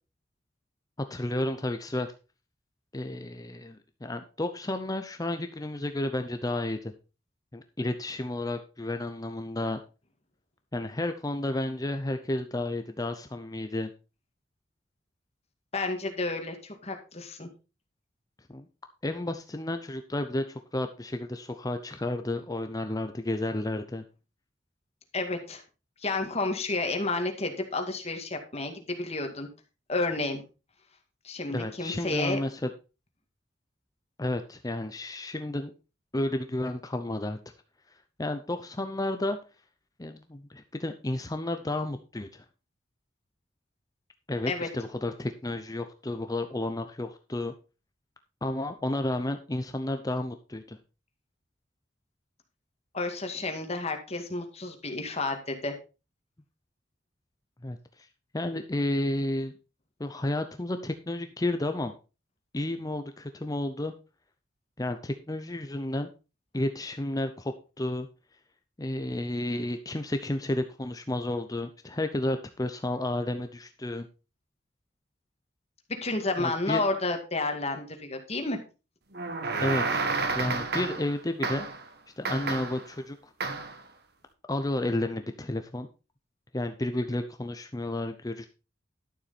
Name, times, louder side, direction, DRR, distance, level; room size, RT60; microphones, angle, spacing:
voice 1, 1.1-2.1 2.9-6.9 7.5-9.8 10.7-13.9 18.5-18.7 19.0-24.0 31.5-32.7 34.2-35.7 36.1-37.4 38.2-39.4 40.0-42.4 44.3-47.5 48.4-50.8 57.6-58.1 58.3-59.5 60.0-61.9 62.5-63.9 64.8-66.1 66.5-68.1 68.8-74.1 76.4-76.8 79.6-80.1 80.3-81.7 82.2-83.2 84.5-85.9 86.5-88.5, left 1 dB, 20° left, 7 dB, 0.7 m, -31 dB
voice 2, 15.7-17.5 25.1-25.6 26.0-29.5 29.9-30.4 31.2-32.4 44.5-44.7 52.9-55.7 76.0-78.6, left 2 dB, 35° left, 5 dB, 2.0 m, -31 dB
sound 1, 79.1-81.1 81.4-81.8 82.2-82.9 83.4-83.8, right 3 dB, 60° right, 1.4 m, -30 dB
12.0 x 7.2 x 4.2 m, 0.31 s
head